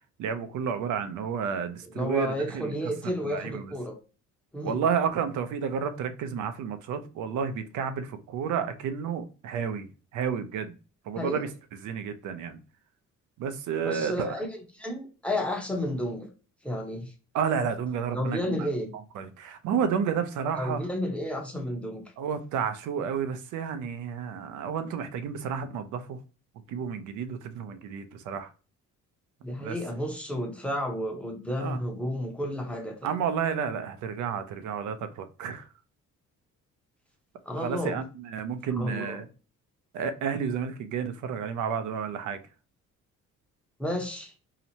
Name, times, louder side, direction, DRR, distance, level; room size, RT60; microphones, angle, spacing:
voice 1, 0.2-2.8 3.2-3.7 4.6-9.9 10.1-10.7 11.1-11.5 11.8-12.6 13.4-14.3 17.3-18.4 19.1-20.8 22.2-26.2 26.7-28.5 29.6-29.8 31.6-31.8 33.0-35.7 37.6-39.3 39.9-42.4, right 7 dB, 80° right, 0.5 m, -31 dB
voice 2, 1.9-4.0 4.5-4.8 11.2-11.4 13.8-16.3 16.6-17.1 18.1-18.9 20.6-22.0 29.4-33.1 37.5-38.0 38.7-39.2 43.8-44.3, left 1 dB, 5° left, 0.8 m, -32 dB
2.8 x 2.1 x 2.7 m
cardioid pair, 90°, 30 cm